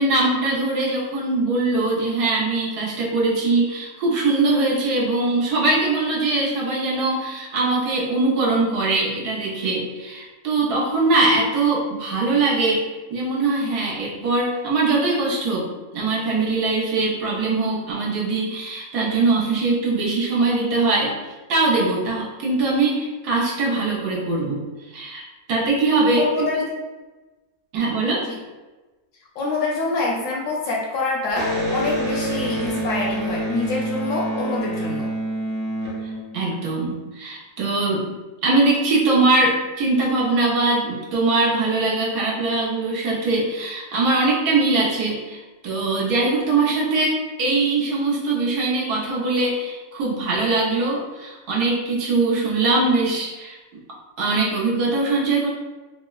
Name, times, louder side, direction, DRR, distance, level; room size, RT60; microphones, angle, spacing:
voice 1, 0.0-12.8 13.1-15.7 15.9-21.1 21.5-24.6 24.9-25.2 25.5-26.3 27.7-28.2 36.3-38.1 38.4-53.6 54.2-55.5, right 3 dB, 90° right, -4 dB, 1.3 m, -21 dB
voice 2, 26.2-26.6 28.2-28.4 29.4-35.1, left 3 dB, 70° left, -2 dB, 0.8 m, -26 dB
Electric guitar, 31.3-36.8, right 1 dB, 60° right, 0.7 m, -27 dB
3.5 x 2.0 x 2.3 m, 1.2 s
omnidirectional pair, 1.6 m